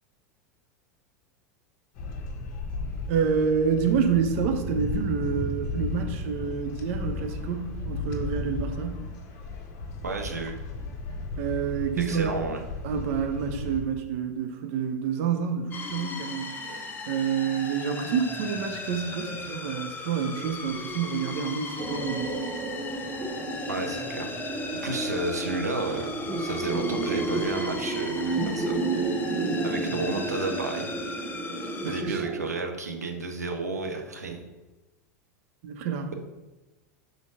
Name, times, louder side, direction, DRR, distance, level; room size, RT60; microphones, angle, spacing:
sound 1, 2.0-13.8, left 3 dB, 45° left, 0.9 m, -34 dB
voice 1, 3.1-9.1 11.4-12.3 12.8-22.3 31.8-32.2 35.6-36.1, right 7 dB, 55° right, 5 dB, 0.9 m, -28 dB
voice 2, 10.0-10.6 12.0-12.6 23.7-24.3 24.8-28.8 29.6-30.9 31.9-34.5, right 3 dB, 85° right, 3 dB, 0.8 m, -32 dB
sound 2, 15.7-32.0, left 4 dB, 20° left, 0.8 m, -37 dB
sound 3, 21.8-32.5, right 3 dB, 20° right, 1.1 m, -31 dB
5.5 x 3.9 x 4.8 m, 1.1 s
figure-of-eight pair, 85°, 9 cm